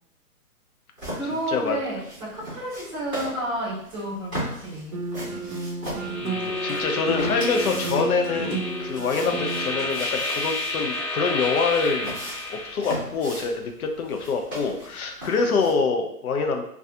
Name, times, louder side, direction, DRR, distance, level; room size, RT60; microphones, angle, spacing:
sound 1, 1.0-15.7, equal, 5° left, 0.5 m, -38 dB
voice 1, 1.1-5.0, right 1 dB, 10° right, -9 dB, 1.1 m, -31 dB
sound 2, 4.9-9.9, right 2 dB, 70° right, 0.7 m, -31 dB
sound 3, 5.9-12.7, left 2 dB, 25° left, 1.2 m, -31 dB
voice 2, 6.2-12.1 12.5-16.6, left 4 dB, 70° left, 4 dB, 0.6 m, -25 dB
2.5 x 2.4 x 2.4 m, 0.73 s
hypercardioid pair, 145°, 46 cm